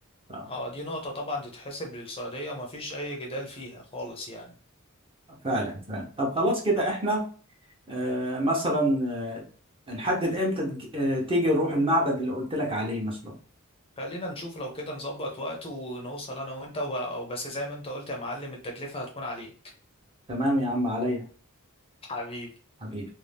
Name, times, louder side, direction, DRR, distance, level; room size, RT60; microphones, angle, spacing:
voice 1, 0.4-4.5 14.0-19.5 22.1-22.5, left 1 dB, 25° left, 1 dB, 0.6 m, -35 dB
voice 2, 5.4-7.2 7.9-9.4 9.9-13.3 20.3-21.2 22.8-23.1, equal, 25° right, -1 dB, 0.8 m, -27 dB
2.6 x 2.2 x 3.3 m, 0.40 s
head